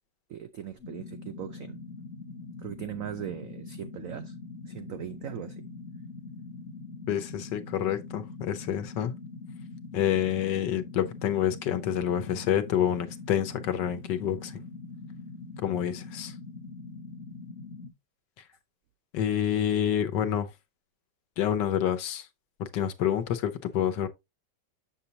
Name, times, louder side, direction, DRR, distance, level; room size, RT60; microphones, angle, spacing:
voice 1, 0.3-1.8 2.6-4.3 4.7-5.6, right 11 dB, 80° right, 0.7 m, -39 dB
sound 1, 0.8-17.9, left 3 dB, 40° left, 1.1 m, -43 dB
voice 2, 7.1-9.1 9.9-14.6 15.6-16.3 19.1-20.5 21.4-22.3 22.6-24.1, left 10 dB, 70° left, 1.5 m, -28 dB
7.0 x 7.0 x 2.8 m
omnidirectional pair, 2.0 m